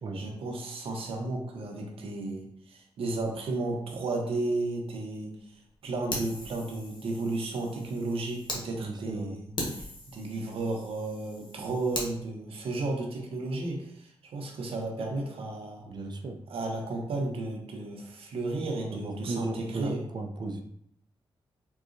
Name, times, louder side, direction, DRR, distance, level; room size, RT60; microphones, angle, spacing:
voice 1, 0.1-5.5 5.8-9.5 9.8-15.8 16.5-20.0, right 2 dB, 80° right, 1 dB, 0.7 m, -33 dB
Fire, 6.1-8.6 9.1-9.2 9.6-12.1, left 1 dB, 55° left, 1.0 m, -39 dB
voice 2, 8.8-9.4 15.9-16.4 18.9-20.6, right 3 dB, 50° right, 4 dB, 0.4 m, -36 dB
3.9 x 2.3 x 2.5 m, 0.71 s
cardioid pair, 65°, 10 cm